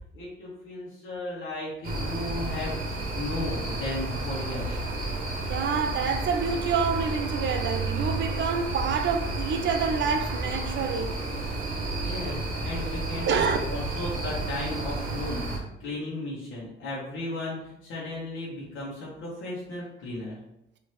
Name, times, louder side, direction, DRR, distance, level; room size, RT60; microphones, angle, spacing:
voice 1, 0.0-4.9 12.0-20.4, left 1 dB, 85° left, 1.2 m, -35 dB
sound 1, 1.8-15.6, right 2 dB, 45° right, 1.2 m, -31 dB
voice 2, 5.5-11.2 13.3-13.6, right 6 dB, 65° right, 0.5 m, -27 dB
4.3 x 2.8 x 3.3 m
cardioid pair, 90°, 20 cm